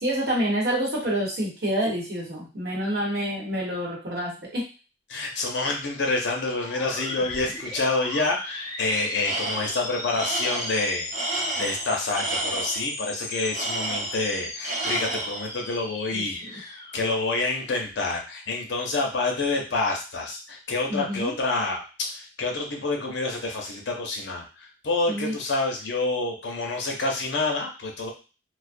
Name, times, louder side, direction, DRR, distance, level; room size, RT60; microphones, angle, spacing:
voice 1, 0.0-4.6 16.1-16.2 20.9-21.3 25.1-25.4, equal, 60° right, -3 dB, 1.0 m, -27 dB
voice 2, 5.1-28.1, left 3 dB, 70° left, 1 dB, 0.6 m, -28 dB
sound 1, 6.5-18.2, left 2 dB, 20° left, 0.4 m, -37 dB
Tools, 9.2-9.8 10.1-12.9 13.5-14.4 14.6-15.5, right 2 dB, 45° right, 0.5 m, -30 dB
2.4 x 2.0 x 2.5 m, 0.34 s
head